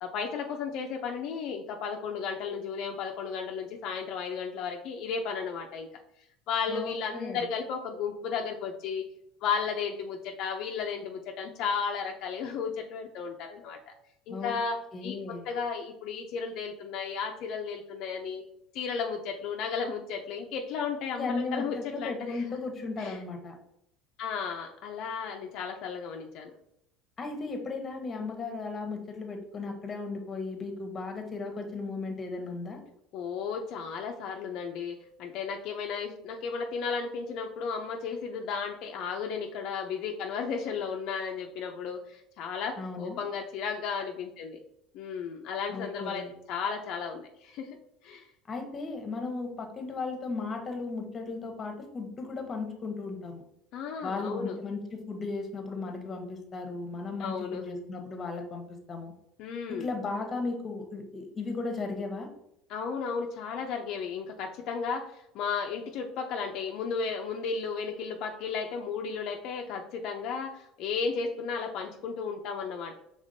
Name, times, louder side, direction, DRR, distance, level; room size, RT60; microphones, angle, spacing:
voice 1, 0.0-5.9 6.5-9.0 9.4-13.8 14.3-18.4 18.7-22.4 23.0-23.2 24.2-26.5 33.1-44.6 44.9-47.8 48.0-48.3 53.7-54.6 57.2-57.6 59.4-59.9 62.7-73.0, left 5 dB, 60° left, 2 dB, 0.4 m, -34 dB
voice 2, 6.7-7.4 14.3-14.5 14.9-15.5 21.2-23.6 27.2-32.8 42.8-43.2 45.7-46.3 48.5-53.4 54.0-59.1 59.7-62.3, left 3 dB, 30° left, 5 dB, 0.9 m, -36 dB
5.0 x 3.5 x 2.6 m, 0.78 s
supercardioid pair, 115°, 0 cm